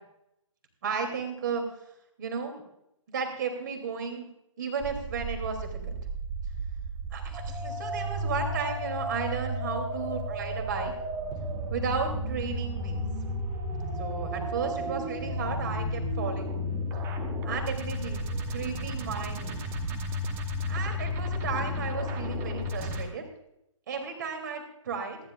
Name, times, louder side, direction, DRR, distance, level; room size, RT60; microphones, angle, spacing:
voice 1, 0.8-1.6 2.2-2.6 3.1-4.3 4.6-6.0 7.1-10.9 11.7-13.0 14.0-16.5 17.4-18.2 18.5-19.6 20.7-23.2 23.9-25.2, right 5 dB, 35° right, 4 dB, 3.1 m, -34 dB
sound 1, 4.8-23.0, equal, 15° right, 1.1 m, -33 dB
sound 2, 9.0-9.3 9.8-10.1 10.5-10.8 11.3-11.6 12.0-12.4 12.8-13.1 13.5-13.9 14.3-14.6 15.0-15.4 15.8-16.1 16.5-16.9 17.3-17.6 18.0-18.4 18.8-19.1 19.5-19.8 20.3-20.6 21.0-21.1, left 2 dB, 80° left, 1.2 m, -47 dB
26.5 x 11.0 x 2.5 m, 0.81 s
figure-of-eight pair, 140°, 17 cm